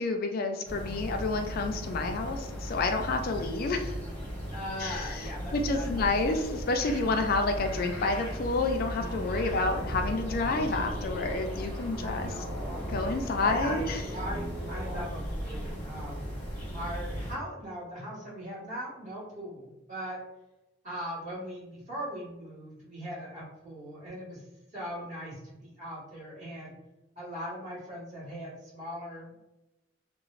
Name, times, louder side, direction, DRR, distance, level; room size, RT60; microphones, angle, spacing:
voice 1, 0.0-3.9 4.8-12.3 12.9-14.0, left 3 dB, 50° left, 5 dB, 0.3 m, -29 dB
sound 1, 0.7-17.4, equal, 10° left, 0.8 m, -37 dB
voice 2, 4.5-6.2 9.3-9.6 10.6-10.8 12.0-12.6 13.4-13.8 14.1-16.2 16.7-20.2 20.8-24.4 24.7-26.7 27.1-29.4, equal, 40° right, -9 dB, 1.4 m, -40 dB
sound 2, 9.0-11.4 12.0-15.0, equal, 15° right, 0.4 m, -39 dB
2.9 x 2.0 x 2.4 m, 0.95 s
head